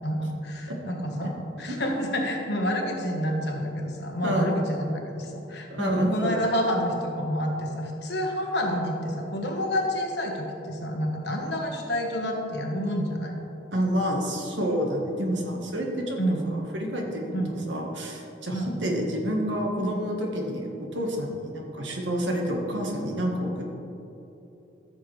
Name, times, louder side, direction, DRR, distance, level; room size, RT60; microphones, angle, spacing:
voice 1, 0.0-1.3 1.6-13.3 16.2-16.4 17.3-17.5 18.5-18.7, equal, 65° left, 1 dB, 1.5 m, -28 dB
voice 2, 4.2-4.7 5.7-6.3 13.7-16.2 16.4-17.4 17.7-23.8, equal, 90° right, 0 dB, 1.6 m, -28 dB
14.5 x 6.9 x 3.4 m, 3.0 s
head